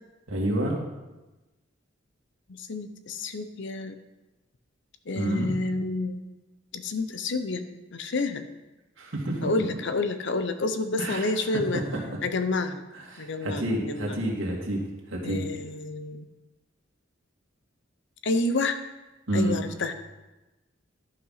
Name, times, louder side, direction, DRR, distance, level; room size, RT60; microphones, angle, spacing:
voice 1, 0.3-0.8 5.1-5.5 9.0-9.5 11.0-11.3 11.7-11.8 13.1-14.8 15.1-15.4 19.3-19.6, right 1 dB, 80° right, -1 dB, 2.4 m, -28 dB
voice 2, 2.5-4.0 5.1-6.3 6.7-8.4 9.4-11.8 12.2-12.8 13.2-14.2 15.2-16.3 18.2-18.8 19.3-19.9, left 3 dB, 65° left, 9 dB, 0.8 m, -29 dB
11.0 x 5.7 x 5.7 m, 1.1 s
head